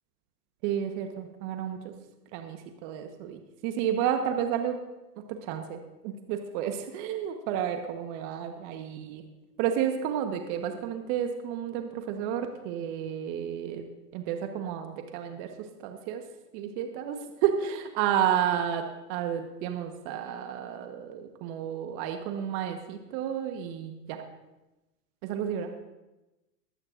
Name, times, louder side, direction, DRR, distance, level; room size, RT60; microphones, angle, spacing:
voice 1, 0.6-1.9 2.3-4.8 5.2-9.3 9.6-16.2 16.5-24.2 25.2-25.7, right 9 dB, 45° right, 5 dB, 1.2 m, -31 dB
22.0 x 8.5 x 2.5 m, 1.0 s
hypercardioid pair, 115°, 49 cm